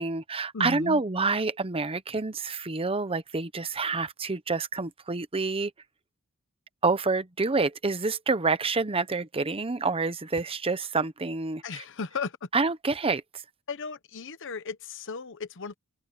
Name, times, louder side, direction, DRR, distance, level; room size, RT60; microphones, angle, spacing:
voice 1, 0.0-5.7 6.8-11.8 12.5-13.4, right 3 dB, 25° right, 0.9 m, -28 dB
voice 2, 0.5-1.0 11.6-12.5 13.7-15.7, left 4 dB, 60° left, 1.0 m, -35 dB
open air
head